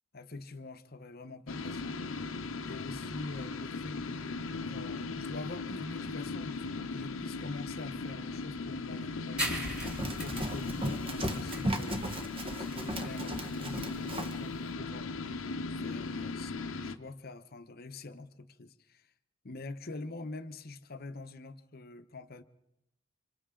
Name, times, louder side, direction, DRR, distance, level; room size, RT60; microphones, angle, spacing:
voice 1, 0.1-2.0 2.6-9.6 10.2-12.1 12.6-15.4 15.8-19.1 19.4-22.4, left 2 dB, 50° left, 9 dB, 0.9 m, -45 dB
sound 1, 1.5-17.0, left 3 dB, 80° left, 0.9 m, -38 dB
sound 2, 9.4-16.5, equal, 5° right, 2.8 m, -41 dB
Run, 9.7-14.4, right 1 dB, 25° right, 1.2 m, -37 dB
28.5 x 25.5 x 3.8 m, 0.89 s
head